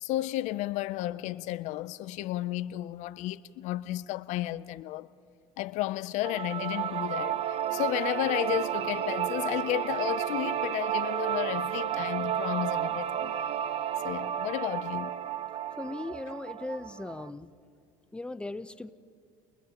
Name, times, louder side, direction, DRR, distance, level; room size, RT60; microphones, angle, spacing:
voice 1, 0.0-5.1 5.6-13.3 14.0-15.1, left 16 dB, 65° left, 0.5 m, -33 dB
sound 1, 6.2-17.3, right 10 dB, 50° right, 0.8 m, -32 dB
voice 2, 15.8-17.5 18.1-18.9, left 2 dB, 10° left, 0.7 m, -38 dB
30.0 x 30.0 x 3.0 m
supercardioid pair, 105°, 13 cm